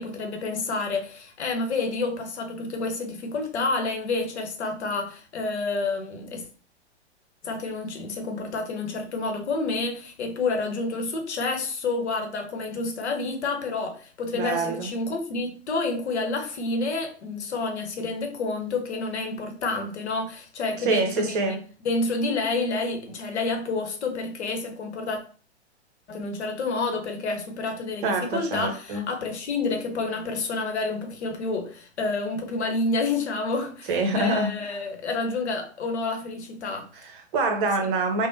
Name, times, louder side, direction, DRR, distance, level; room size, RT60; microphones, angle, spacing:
voice 1, 0.0-6.4 7.4-21.6 21.8-25.2 26.1-33.9 34.1-36.9, left 3 dB, 75° left, 0.8 m, -29 dB
voice 2, 14.3-14.9 20.8-21.6 28.0-29.1 33.9-34.5 37.0-38.3, right 3 dB, 50° right, 0.8 m, -25 dB
3.4 x 2.1 x 2.6 m
figure-of-eight pair, 105°, 34 cm